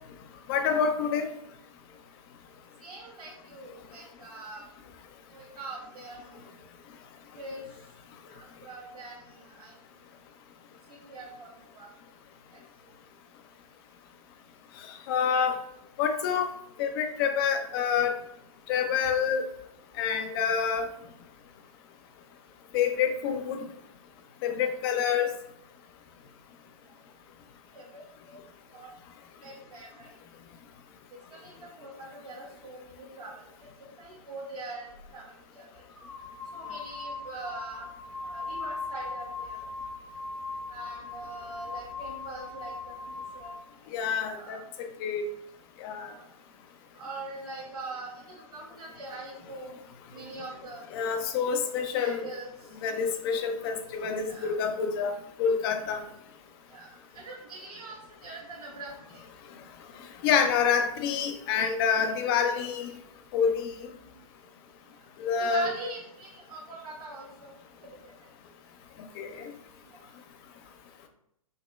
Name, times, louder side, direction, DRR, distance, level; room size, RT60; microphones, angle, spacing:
voice 1, 0.5-1.3 15.1-15.6 16.0-16.5 16.8-18.1 18.7-19.4 20.0-20.9 22.7-23.6 24.4-25.3 43.9-45.3 45.8-46.1 50.9-52.2 52.8-55.1 55.4-56.0 60.2-62.9 63.3-63.9 65.2-65.7 69.2-69.5, left 6 dB, 40° left, 6 dB, 0.6 m, -27 dB
voice 2, 2.8-4.6 5.3-6.5 7.3-7.6 8.4-9.7 10.9-11.9 12.5-12.6 27.7-28.4 28.7-28.9 29.4-30.1 31.3-33.4 34.0-35.8 36.5-37.9 38.2-39.7 40.7-43.6 44.2-44.6 46.0-46.3 46.9-49.8 50.1-50.9 52.0-52.5 54.3-54.5 56.7-59.2 65.2-67.6 67.8-68.0 69.9-70.0, right 2 dB, 80° right, -6 dB, 1.2 m, -43 dB
sound 1, 34.9-35.1 35.9-43.6, left 3 dB, 65° left, 1.5 m, -39 dB
5.3 x 2.8 x 2.3 m, 0.76 s
figure-of-eight pair, 115°, 19 cm